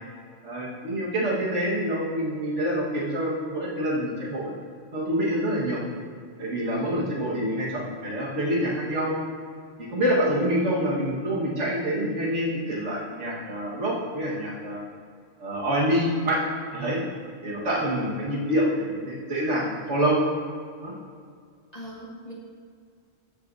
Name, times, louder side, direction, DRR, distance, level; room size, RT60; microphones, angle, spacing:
voice 1, 0.4-4.5 4.9-5.8 6.4-9.2 9.8-14.8 15.4-16.4 16.7-17.0 17.4-20.2 20.8-20.9, equal, 85° right, -5 dB, 1.9 m, -26 dB
voice 2, 6.7-7.1 21.7-22.3, equal, 35° left, -4 dB, 1.4 m, -41 dB
14.5 x 6.9 x 2.7 m, 2.2 s
omnidirectional pair, 1.2 m